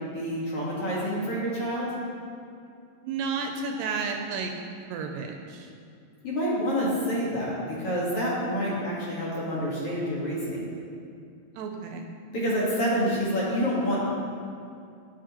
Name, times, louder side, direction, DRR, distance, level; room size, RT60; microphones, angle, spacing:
voice 1, 0.1-1.9 6.2-10.6 12.3-14.1, equal, 55° left, -6 dB, 1.8 m, -28 dB
voice 2, 3.0-4.5 4.9-5.7 11.6-12.1, right 4 dB, 80° right, 3 dB, 2.1 m, -32 dB
11.0 x 7.6 x 2.9 m, 2.5 s
omnidirectional pair, 4.3 m